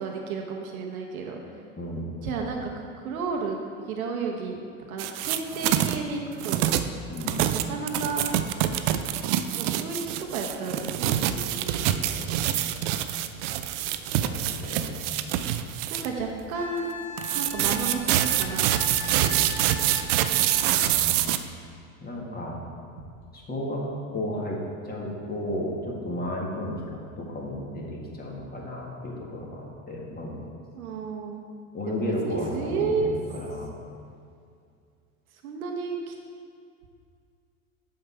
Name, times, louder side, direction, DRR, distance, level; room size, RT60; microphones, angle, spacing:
voice 1, 0.0-1.4 2.2-3.6 3.9-4.6 4.9-6.6 7.5-8.2 9.6-12.1 15.9-16.9 17.3-18.6 19.1-19.9 20.3-20.7 30.7-31.4 31.9-33.1 35.4-36.1, right 4 dB, 80° right, 1 dB, 1.0 m, -32 dB
voice 2, 1.8-2.1 7.1-7.3 14.1-15.0 20.8-21.4 22.0-22.6 23.3-23.9 24.1-24.6 24.8-30.3 31.7-33.7, left 1 dB, 20° left, -2 dB, 1.8 m, -33 dB
sound 1, 5.0-6.0 6.4-16.1 17.2-21.4, right 12 dB, 55° right, 0.6 m, -26 dB
Wind instrument woodwind instrument, 16.5-20.8 23.5-23.6, left 2 dB, 75° left, 2.0 m, -39 dB
7.6 x 5.7 x 4.5 m, 2.3 s
hypercardioid pair, 85°, 42 cm